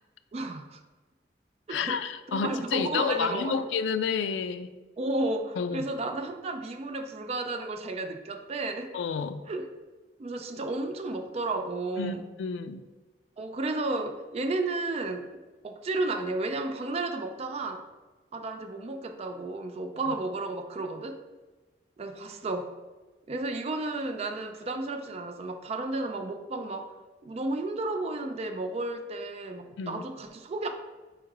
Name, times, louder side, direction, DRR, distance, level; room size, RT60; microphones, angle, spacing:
voice 1, 0.3-0.8 1.7-2.0 2.3-3.7 5.0-9.0 9.5-9.7 10.2-12.3 13.4-15.3 15.6-17.9 18.3-21.2 22.0-22.7 23.3-26.9 27.2-30.7, right 2 dB, 35° right, 6 dB, 0.3 m, -32 dB
voice 2, 1.7-4.7 5.6-5.9 8.9-9.4 12.0-12.8 29.8-30.0, left 6 dB, 90° left, 10 dB, 0.3 m, -30 dB
4.4 x 2.4 x 4.7 m, 1.2 s
head